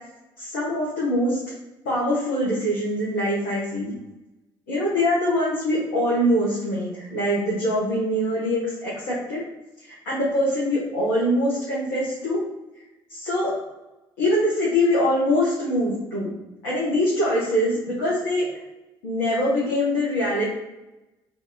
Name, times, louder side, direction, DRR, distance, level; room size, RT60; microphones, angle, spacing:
voice 1, 0.4-1.4 1.8-3.9 4.7-9.4 9.8-12.4 13.1-13.5 14.2-16.3 16.6-18.5 19.0-20.4, left 1 dB, 75° left, -7 dB, 1.1 m, -23 dB
3.1 x 2.7 x 2.6 m, 1.0 s
hypercardioid pair, 50°, 12 cm